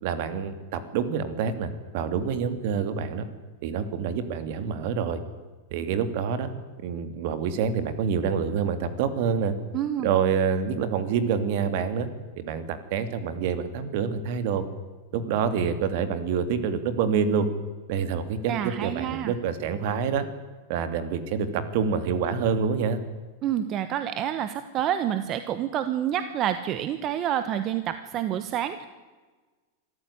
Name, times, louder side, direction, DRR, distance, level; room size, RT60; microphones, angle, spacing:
voice 1, 0.0-3.2 3.6-5.2 5.7-6.5 6.8-9.5 10.0-12.1 12.4-14.6 15.1-17.5 17.9-20.2 20.7-23.0, right 6 dB, 55° right, 11 dB, 2.7 m, -27 dB
voice 2, 9.7-10.1 18.5-19.3 23.4-28.9, right 10 dB, 30° right, 10 dB, 1.2 m, -28 dB
25.5 x 14.0 x 10.0 m, 1.3 s
supercardioid pair, 150°, 0 cm